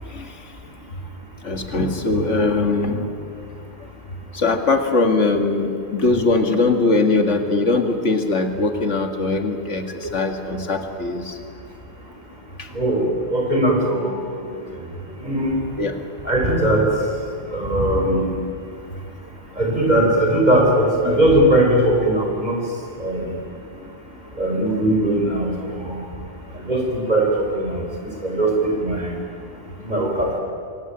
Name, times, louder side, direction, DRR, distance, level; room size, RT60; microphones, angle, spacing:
voice 1, 1.4-3.1 4.3-11.3 15.8-16.0 21.0-21.2, left 3 dB, 80° left, 6 dB, 2.3 m, -21 dB
voice 2, 12.7-14.8 15.2-15.7 16.2-16.9 17.5-18.3 19.5-22.6 23.0-23.3 24.3-26.0 26.5-26.8 27.1-29.1 29.8-30.4, right 1 dB, 35° right, 0 dB, 5.6 m, -20 dB
27.5 x 21.5 x 9.0 m, 2.3 s
omnidirectional pair, 1.2 m